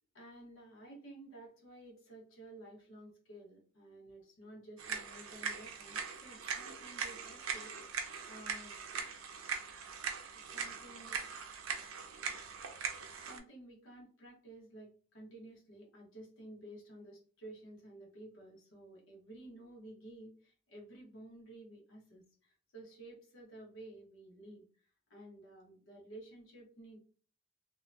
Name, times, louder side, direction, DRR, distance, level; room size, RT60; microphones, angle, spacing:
voice 1, 0.1-7.9 8.3-8.7 10.5-11.2 13.3-27.0, right 1 dB, 75° left, -2 dB, 1.1 m, -53 dB
sound 1, 4.8-13.4, right 6 dB, 85° right, 0.5 m, -41 dB
2.8 x 2.2 x 2.6 m, 0.40 s
head